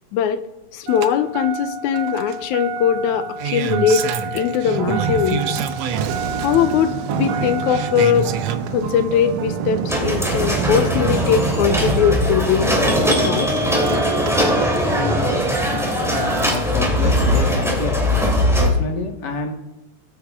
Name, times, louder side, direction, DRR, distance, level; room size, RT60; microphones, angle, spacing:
voice 1, 0.7-4.1 4.3-5.6 6.4-8.3 8.7-12.7 13.2-13.6 13.9-14.0, left 8 dB, 75° left, 10 dB, 2.0 m, -20 dB
Engine starting, 0.9-16.8 18.0-18.1, right 5 dB, 75° right, 1.6 m, -29 dB
sound 1, 4.6-14.2, right 7 dB, 90° right, 1.4 m, -28 dB
sound 2, 9.9-18.7, equal, ahead, 2.2 m, -20 dB
voice 2, 16.1-18.0 18.5-19.5, left 3 dB, 45° left, 3 dB, 1.6 m, -27 dB
22.5 x 8.7 x 3.6 m, 0.98 s
omnidirectional pair, 3.9 m